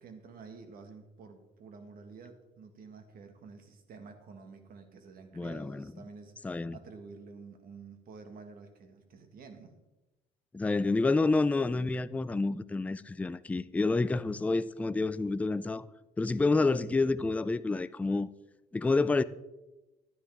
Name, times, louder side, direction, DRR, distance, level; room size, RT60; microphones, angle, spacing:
voice 1, 0.0-9.7, right 4 dB, 60° right, 1.6 m, -50 dB
voice 2, 5.3-5.9 6.4-6.8 10.5-15.9 16.2-18.3 18.7-19.2, left 3 dB, 10° left, 0.3 m, -28 dB
11.0 x 9.8 x 3.5 m
cardioid pair, 110°, 17 cm